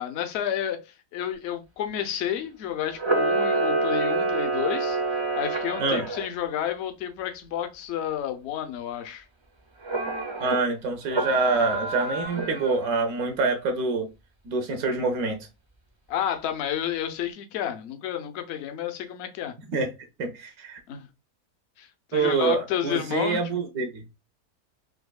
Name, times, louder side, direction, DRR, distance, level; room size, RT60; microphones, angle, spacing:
voice 1, 0.0-9.2 16.1-19.5 20.9-21.1 21.8-23.6, left 10 dB, 60° left, 0.8 m, -31 dB
Camera, 2.9-6.3 9.8-10.6 11.1-12.9, right 2 dB, 50° right, 0.3 m, -27 dB
voice 2, 10.4-14.1 14.4-15.5 19.7-19.9 20.2-20.8 22.1-24.0, right 3 dB, 80° right, 1.2 m, -26 dB
4.2 x 2.6 x 2.2 m
omnidirectional pair, 1.5 m